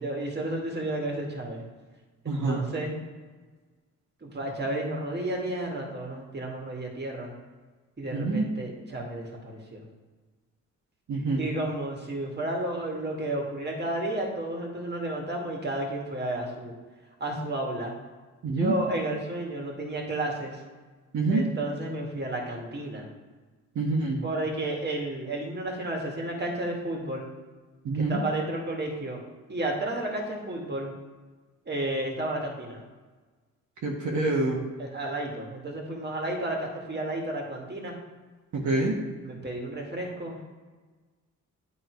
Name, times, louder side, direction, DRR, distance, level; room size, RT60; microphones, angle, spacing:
voice 1, 0.0-1.6 2.2-3.0 4.2-7.3 8.0-9.8 11.4-16.7 17.2-17.9 18.4-20.6 21.3-23.1 24.2-27.3 27.9-29.2 29.5-30.9 31.7-32.8 34.8-38.0 39.2-40.4, right 1 dB, 30° right, 0 dB, 2.0 m, -32 dB
voice 2, 2.3-2.6 8.1-8.4 11.1-11.4 18.4-18.7 21.1-21.4 23.7-24.2 27.8-28.2 33.8-34.6 38.5-38.9, right 3 dB, 65° right, -2 dB, 1.4 m, -26 dB
9.4 x 3.8 x 4.6 m, 1.3 s
cardioid pair, 70°, 32 cm